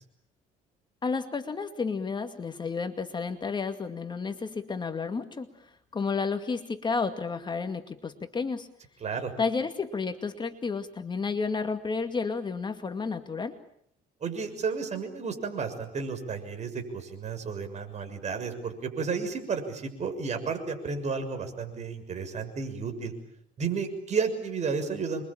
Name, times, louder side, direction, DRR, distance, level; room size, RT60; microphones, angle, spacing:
voice 1, 1.0-5.5 5.9-8.7 9.4-13.6, left 4 dB, 25° left, 7 dB, 2.3 m, -31 dB
voice 2, 9.0-9.3 14.2-23.1 23.6-25.2, right 5 dB, 40° right, 6 dB, 6.5 m, -32 dB
28.0 x 23.5 x 8.8 m, 0.68 s
cardioid pair, 110°, 17 cm